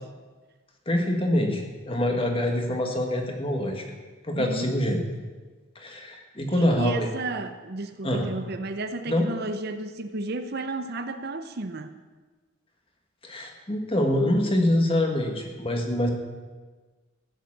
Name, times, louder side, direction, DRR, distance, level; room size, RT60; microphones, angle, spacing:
voice 1, 0.8-3.8 4.2-5.0 5.7-7.1 8.0-8.3 9.1-9.3 13.2-16.1, left 1 dB, 25° left, 2 dB, 1.7 m, -25 dB
voice 2, 4.3-4.7 6.6-12.0, right 2 dB, 50° right, 9 dB, 0.7 m, -33 dB
14.5 x 7.4 x 7.3 m, 1.3 s
head